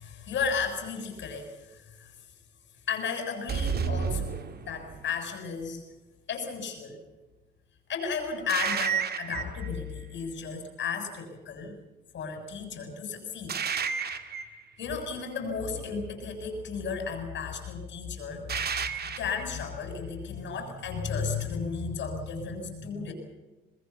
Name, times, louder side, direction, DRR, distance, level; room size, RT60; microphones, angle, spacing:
voice 1, 0.0-2.1 2.9-5.8 6.3-7.0 7.9-11.7 12.1-13.6 14.8-23.1, left 5 dB, 65° left, 4 dB, 7.2 m, -34 dB
sound 1, 3.5-5.1 8.5-9.7 13.5-14.6 18.5-19.4, right 6 dB, 55° right, 2.3 m, -31 dB
24.0 x 21.0 x 7.2 m, 1.1 s
cardioid pair, 90°, 20 cm